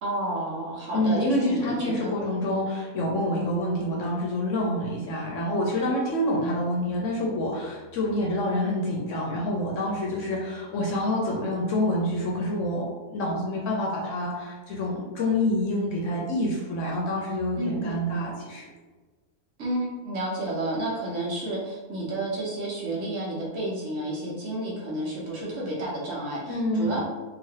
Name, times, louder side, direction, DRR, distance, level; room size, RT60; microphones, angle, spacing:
voice 1, 0.0-2.1 17.6-18.0 19.6-27.0, right 1 dB, 60° right, -5 dB, 1.0 m, -31 dB
voice 2, 0.9-18.7 26.5-27.0, left 1 dB, 65° left, -3 dB, 0.8 m, -27 dB
3.0 x 2.5 x 2.7 m, 1.3 s
omnidirectional pair, 1.6 m